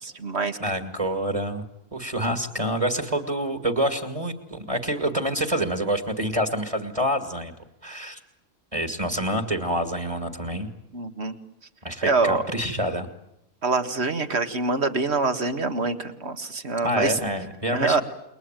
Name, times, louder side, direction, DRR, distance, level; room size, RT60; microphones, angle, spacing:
voice 1, 0.0-0.6 10.9-11.4 12.0-12.4 13.6-17.2 17.7-18.0, right 3 dB, 50° right, 8 dB, 2.0 m, -25 dB
voice 2, 0.6-1.7 1.9-7.5 7.8-8.2 8.7-10.7 11.8-13.1 16.8-18.0, equal, 25° right, 8 dB, 2.3 m, -27 dB
29.0 x 22.0 x 9.2 m, 0.82 s
omnidirectional pair, 1.4 m